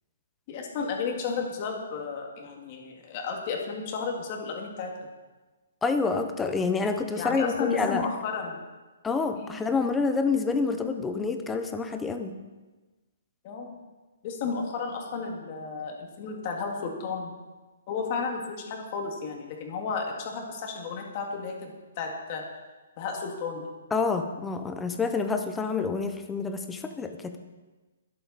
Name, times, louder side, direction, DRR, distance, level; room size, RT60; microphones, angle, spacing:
voice 1, 0.5-4.9 7.2-8.6 9.3-9.6 13.4-13.8 14.2-17.4 17.9-22.4 23.0-23.7, left 5 dB, 25° left, 1 dB, 1.9 m, -33 dB
voice 2, 5.8-8.1 9.0-12.4 23.9-27.4, left 4 dB, 5° left, 7 dB, 0.6 m, -28 dB
22.5 x 7.7 x 4.1 m, 1.2 s
hypercardioid pair, 175°, 0 cm